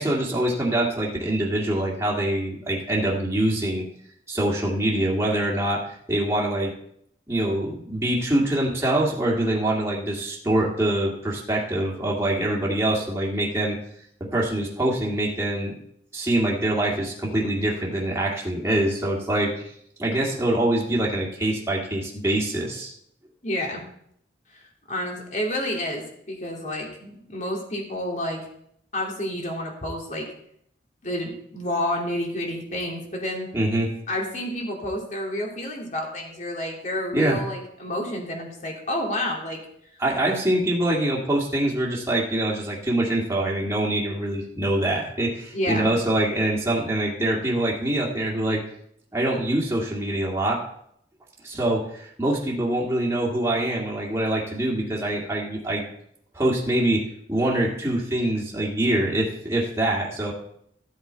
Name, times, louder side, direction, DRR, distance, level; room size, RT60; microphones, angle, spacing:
voice 1, 0.0-3.8 4.3-6.7 7.3-13.8 14.3-15.8 16.1-19.7 20.0-22.9 33.5-33.9 37.1-37.4 40.0-48.6 49.1-50.6 51.4-55.8 56.3-60.3, right 1 dB, 15° right, -3 dB, 2.0 m, -24 dB
voice 2, 23.4-23.8 24.5-28.4 28.9-30.3 31.0-33.5 34.1-39.6 45.5-45.9, left 1 dB, 40° left, 0 dB, 2.7 m, -29 dB
14.0 x 8.1 x 4.5 m, 0.71 s
head